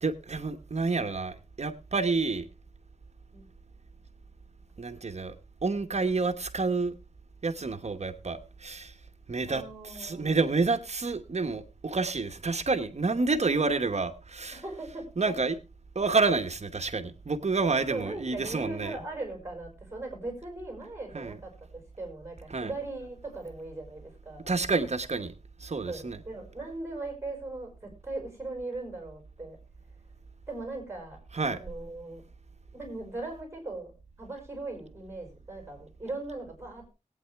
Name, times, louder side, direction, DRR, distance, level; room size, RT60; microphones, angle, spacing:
voice 1, 0.0-2.5 4.8-5.3 5.6-6.9 7.4-8.9 9.3-14.6 15.2-15.6 15.9-19.0 21.1-21.4 22.5-22.7 24.5-25.3 25.6-26.2 31.3-31.6, right 3 dB, 55° right, 1.0 m, -29 dB
voice 2, 9.5-10.3 14.5-15.3 16.3-16.4 17.9-24.5 25.9-29.6 30.5-31.2 31.5-32.2 32.7-33.9 34.2-36.9, right 2 dB, 20° right, 5.4 m, -39 dB
20.0 x 9.0 x 3.4 m
wide cardioid pair, 80°, 13 cm